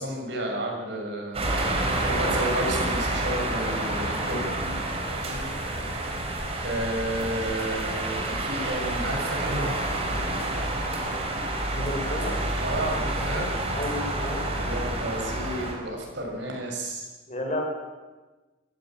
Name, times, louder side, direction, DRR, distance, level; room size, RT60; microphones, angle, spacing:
voice 1, 0.0-1.4 2.0-4.5 6.6-9.8 12.6-13.5 14.6-17.0, right 1 dB, 70° right, 0 dB, 6.5 m, -31 dB
sound 1, 1.3-15.7, right 1 dB, 30° right, 4.0 m, -28 dB
voice 2, 11.7-12.4 13.7-14.5 17.3-17.6, left 1 dB, 35° left, 1 dB, 4.9 m, -32 dB
23.5 x 15.0 x 8.9 m, 1.2 s
head